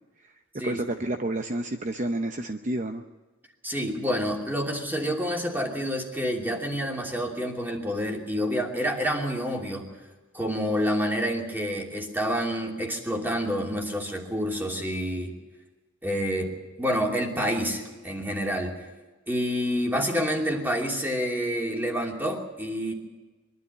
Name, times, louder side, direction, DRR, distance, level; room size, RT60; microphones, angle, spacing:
voice 1, 0.6-3.0, right 1 dB, 40° right, 6 dB, 0.8 m, -30 dB
voice 2, 3.6-9.9 10.3-15.3 16.0-16.5 16.8-18.7 19.3-22.9, equal, 10° right, 0 dB, 2.9 m, -28 dB
22.5 x 12.5 x 9.7 m, 1.2 s
head